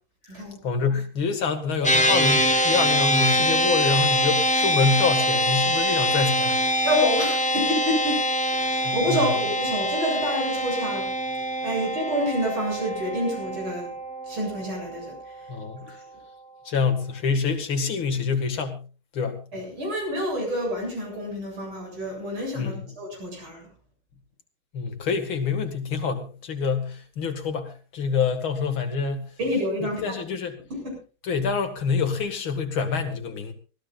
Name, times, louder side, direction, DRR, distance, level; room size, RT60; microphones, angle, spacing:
voice 1, 0.3-6.6 8.6-9.3 15.5-15.9 16.6-18.8 19.1-19.4 22.6-22.9 24.7-29.3 29.8-30.6 31.2-33.5, left 5 dB, 75° left, 7 dB, 2.8 m, -26 dB
sound 1, 1.8-15.4, equal, 5° left, 0.9 m, -24 dB
voice 2, 6.8-8.2 8.7-11.1 11.6-13.9 14.3-15.5 15.8-16.0 19.5-23.7 29.4-30.2 30.7-31.0, equal, 80° right, 0 dB, 8.6 m, -28 dB
24.5 x 15.5 x 2.5 m, 0.34 s
omnidirectional pair, 2.3 m